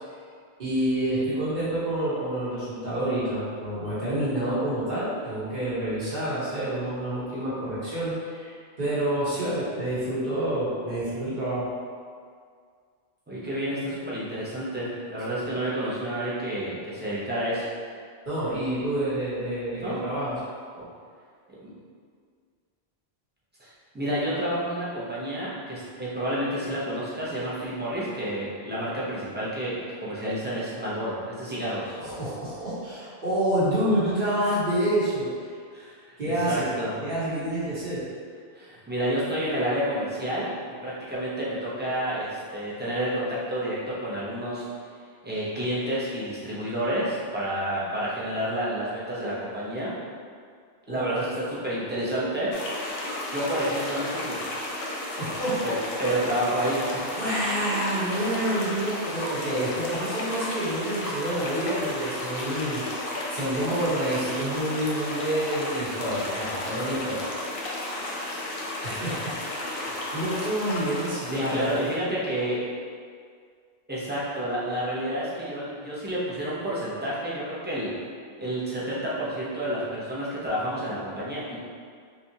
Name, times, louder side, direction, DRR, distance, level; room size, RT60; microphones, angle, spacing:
voice 1, 0.6-11.7 15.3-15.5 18.3-20.4 32.0-35.5 36.2-36.6 37.0-38.1 50.9-51.3 55.2-55.7 57.2-67.3 68.8-71.7, right 1 dB, 50° right, -10 dB, 1.3 m, -28 dB
voice 2, 13.3-17.7 19.8-20.0 20.8-20.9 21.6-21.7 23.6-32.0 35.7-37.0 38.5-40.5 40.8-44.6 45.2-49.9 50.9-52.5 53.3-54.4 55.6-57.0 71.3-72.6 73.9-77.9 78.4-81.6, right 1 dB, 10° right, -9 dB, 0.7 m, -29 dB
sound 1, 52.5-71.9, left 1 dB, 65° left, 0.8 m, -33 dB
3.3 x 3.0 x 2.8 m, 2.1 s
omnidirectional pair, 1.1 m